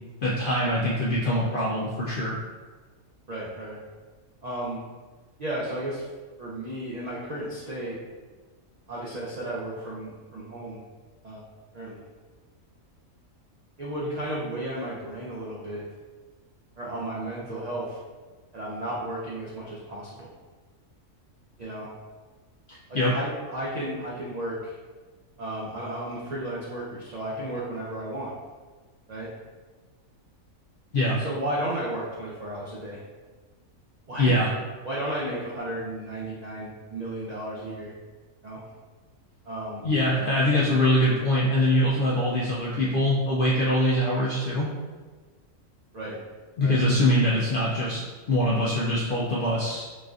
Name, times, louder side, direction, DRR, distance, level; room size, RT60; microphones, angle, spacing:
voice 1, 0.2-2.4 22.7-23.1 30.9-31.2 34.2-34.5 39.8-44.7 46.6-48.0 48.3-49.9, left 1 dB, 70° left, -6 dB, 0.5 m, -23 dB
voice 2, 3.3-3.8 4.4-4.8 5.4-6.0 6.4-8.0 8.9-10.8 11.2-11.4 11.7-12.0 13.8-15.8 16.8-18.0 18.5-20.3 21.6-21.9 22.9-24.8 25.4-28.3 29.1-29.3 31.2-33.0 34.1-34.4 34.8-37.9 38.4-38.6 39.4-39.8 45.9-46.2 46.6-46.8, right 1 dB, 70° right, -6 dB, 0.3 m, -33 dB
4.0 x 2.5 x 2.4 m, 1.4 s
omnidirectional pair, 1.4 m